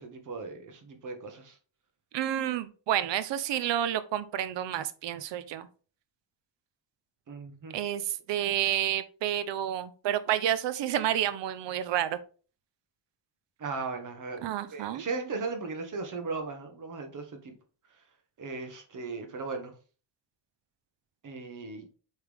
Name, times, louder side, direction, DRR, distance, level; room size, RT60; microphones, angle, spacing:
voice 1, 0.0-1.6 7.3-7.8 13.6-17.5 18.4-19.7 21.2-21.9, right 4 dB, 40° right, 6 dB, 1.2 m, -37 dB
voice 2, 2.1-5.7 7.7-12.2 14.4-15.0, right 11 dB, 65° right, 14 dB, 0.7 m, -30 dB
8.2 x 3.5 x 3.5 m, 0.38 s
cardioid pair, 170°, 47 cm